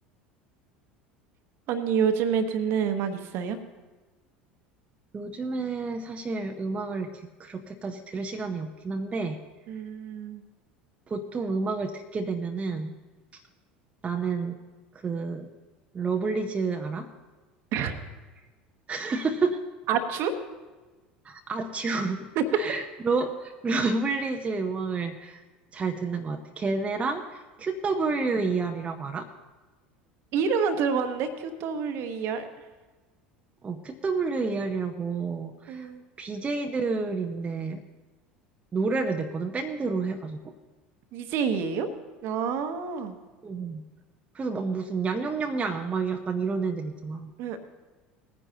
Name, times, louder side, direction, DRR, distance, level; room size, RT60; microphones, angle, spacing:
voice 1, 1.7-3.6 9.7-10.4 17.7-17.9 19.9-20.3 22.3-22.4 30.3-32.5 35.7-36.0 41.1-41.9 42.2-43.2 47.4-47.6, right 6 dB, 50° right, 9 dB, 1.1 m, -27 dB
voice 2, 5.1-9.4 11.1-12.9 13.3-13.4 14.0-14.6 15.0-15.5 15.9-17.1 18.9-19.6 21.2-22.3 22.5-25.4 25.7-29.3 33.6-35.9 36.2-37.8 38.7-40.5 43.4-43.8 44.3-47.3, right 4 dB, 25° right, 4 dB, 0.8 m, -29 dB
19.5 x 9.9 x 2.9 m, 1.3 s
figure-of-eight pair, 70°, 5 cm